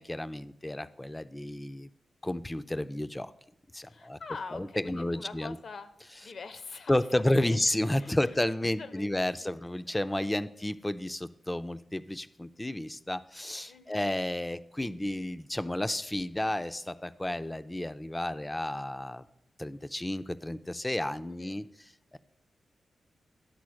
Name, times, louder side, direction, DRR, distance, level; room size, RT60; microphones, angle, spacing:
voice 1, 0.0-1.9 2.2-3.3 3.7-4.2 4.5-5.6 6.9-19.2 19.6-21.6 22.1-22.2, left 1 dB, 15° left, 12 dB, 0.5 m, -31 dB
voice 2, 3.9-5.9 6.2-6.9 7.3-7.6 8.0-9.6 10.0-10.5 13.7-14.0 21.2-21.6, left 4 dB, 65° left, 10 dB, 0.7 m, -45 dB
10.5 x 4.1 x 6.3 m, 0.80 s
cardioid pair, 55°, 0 cm